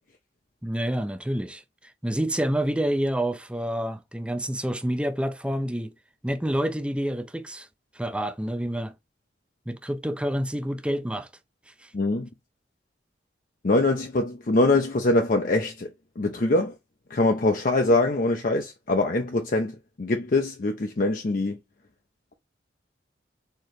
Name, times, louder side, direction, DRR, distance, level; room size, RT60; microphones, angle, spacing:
voice 1, 0.6-5.9 6.2-7.7 7.9-8.9 9.7-11.3 11.8-11.9, right 1 dB, 5° right, 0.4 m, -28 dB
voice 2, 11.9-12.3 13.6-15.9 16.2-16.7 17.1-21.6, left 2 dB, 50° left, 0.6 m, -23 dB
4.4 x 3.7 x 3.1 m
head